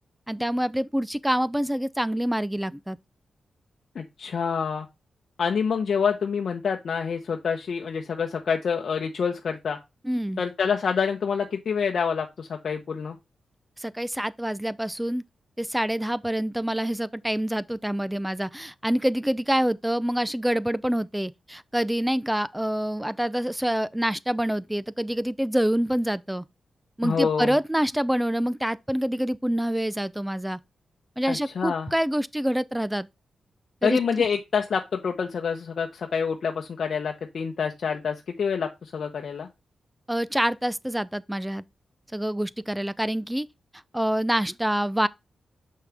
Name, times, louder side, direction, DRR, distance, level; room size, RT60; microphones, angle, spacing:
voice 1, 0.3-3.0 10.0-10.4 13.8-15.2 15.6-26.4 27.0-30.6 31.2-33.1 33.8-34.2 40.1-41.6 42.1-43.5 43.9-45.1, equal, 5° right, 0.5 m, -26 dB
voice 2, 3.9-4.9 5.4-9.8 10.4-13.2 27.0-27.5 31.3-31.9 33.8-39.5, left 6 dB, 70° left, 0.8 m, -27 dB
6.5 x 5.7 x 3.4 m
cardioid pair, 55°, 0 cm